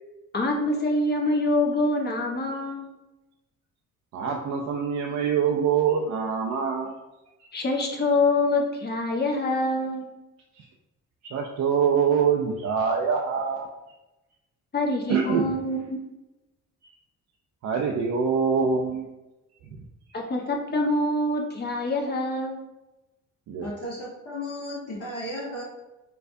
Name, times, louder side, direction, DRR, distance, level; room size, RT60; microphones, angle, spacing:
voice 1, 0.3-2.9 7.5-10.1 14.7-16.0 20.1-22.6, left 2 dB, 35° left, 0 dB, 0.8 m, -25 dB
voice 2, 4.1-6.9 10.6-10.7 11.2-13.7 15.1-15.5 16.8-16.9 17.6-19.1 19.7-19.8 23.5-23.7, right 6 dB, 65° right, 0 dB, 0.5 m, -24 dB
voice 3, 23.6-25.6, left 1 dB, 55° left, -5 dB, 1.3 m, -34 dB
4.4 x 2.4 x 2.5 m, 0.99 s
cardioid pair, 90°, 30 cm